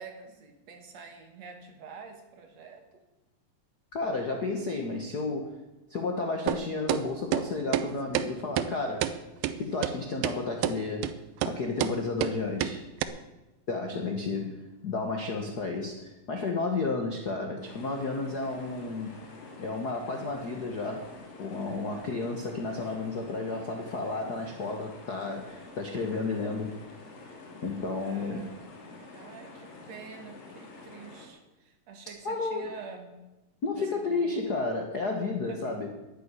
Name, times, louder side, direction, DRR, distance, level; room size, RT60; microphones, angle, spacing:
voice 1, 0.0-3.0 13.9-14.5 21.7-22.4 28.0-28.5 29.0-33.2 33.8-34.5 35.2-35.6, right 5 dB, 55° right, 5 dB, 2.5 m, -47 dB
voice 2, 3.9-5.5 5.9-9.1 9.6-11.2 11.4-12.8 13.7-14.5 14.8-19.2 19.6-21.1 21.4-26.8 27.6-28.5 32.2-32.7 33.6-35.9, left 3 dB, 85° left, 3 dB, 0.8 m, -32 dB
sound 1, 6.5-6.6 6.9-7.0 7.3-7.4 7.7-7.9 8.1-8.3 8.6-8.7 9.0-9.1 9.4-9.5 9.8-9.9 10.2-10.4 10.6-10.8 11.0-11.1 11.4-11.5 11.8-11.9 12.2-12.3 12.6-12.7 13.0-13.1, right 12 dB, 85° right, 2.6 m, -27 dB
sound 2, 17.6-31.3, left 3 dB, 70° left, 4.3 m, -48 dB
11.0 x 10.5 x 9.8 m, 1.0 s
omnidirectional pair, 4.1 m